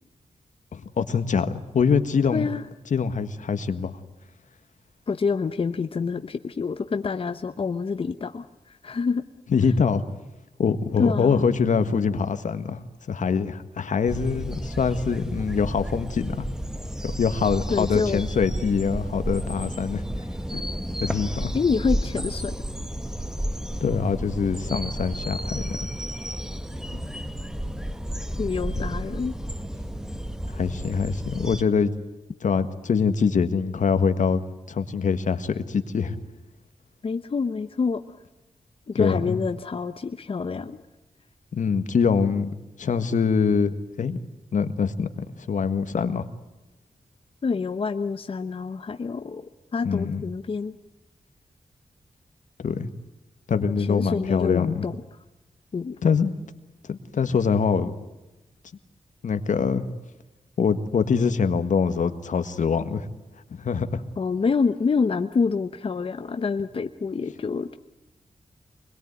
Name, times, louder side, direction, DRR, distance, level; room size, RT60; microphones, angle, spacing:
voice 1, 0.7-2.5 2.9-4.0 9.5-10.0 10.6-12.8 13.1-16.4 17.0-20.0 20.5-20.6 21.0-21.5 23.8-25.8 30.5-31.9 32.4-34.4 34.7-36.2 38.9-39.4 41.6-42.5 42.8-44.2 44.5-45.1 45.5-46.2 49.8-50.2 52.6-52.9 53.5-54.9 56.0-56.3 56.9-57.9 59.2-59.8 60.6-63.1 63.6-64.0, left 6 dB, 80° left, 9 dB, 1.7 m, -24 dB
voice 2, 2.3-2.6 5.1-8.4 8.8-9.2 11.0-11.4 17.7-18.2 21.5-22.5 26.9-27.0 28.4-29.3 37.0-38.0 38.9-40.8 47.4-49.5 49.7-50.8 53.6-55.0 55.7-56.0 64.2-67.7, left 5 dB, 45° left, 8 dB, 0.9 m, -27 dB
sound 1, 14.1-31.6, equal, 5° right, 1.2 m, -32 dB
25.5 x 21.5 x 9.6 m, 1.0 s
wide cardioid pair, 140°, 13 cm